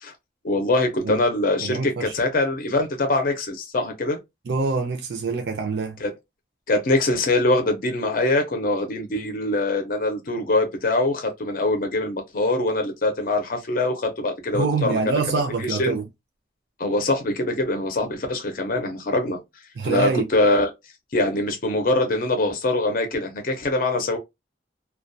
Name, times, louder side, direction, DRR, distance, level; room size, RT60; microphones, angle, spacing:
voice 1, 0.4-4.2 6.0-6.1 6.7-15.0 15.7-16.0 16.8-19.4 19.8-20.7 21.1-24.2, left 2 dB, 50° left, 0.5 m, -23 dB
voice 2, 1.6-2.1 4.5-6.0 14.5-16.1 19.8-20.3, right 4 dB, 70° right, 0.4 m, -25 dB
2.2 x 2.2 x 2.6 m
head